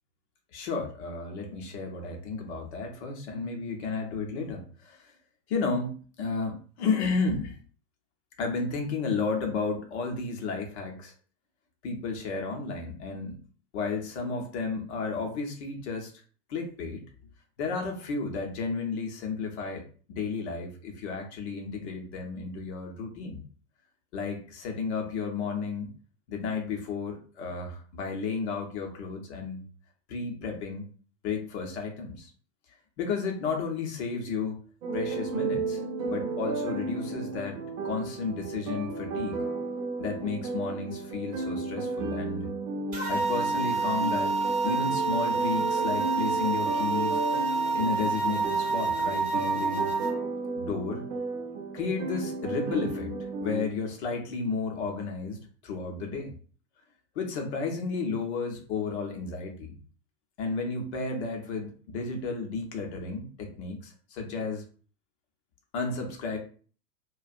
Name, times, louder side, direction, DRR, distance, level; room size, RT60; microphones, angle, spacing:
voice 1, 0.5-5.1 5.5-7.6 8.4-11.1 11.8-13.4 13.7-16.1 16.5-17.0 17.6-23.4 24.1-25.9 26.3-29.6 30.1-30.8 31.2-32.3 33.0-34.6 34.9-39.4 40.0-42.5 43.1-44.4 44.6-47.2 47.7-49.9 50.5-51.0 51.7-56.3 57.1-59.8 60.4-64.6 65.7-66.4, left 4 dB, 45° left, 2 dB, 0.8 m, -33 dB
sound 1, 34.8-53.7, right 3 dB, 55° right, 0.7 m, -33 dB
sound 2, 42.9-50.1, right 4 dB, 20° right, 0.6 m, -28 dB
2.4 x 2.2 x 2.5 m, 0.42 s
figure-of-eight pair, 100°, 48 cm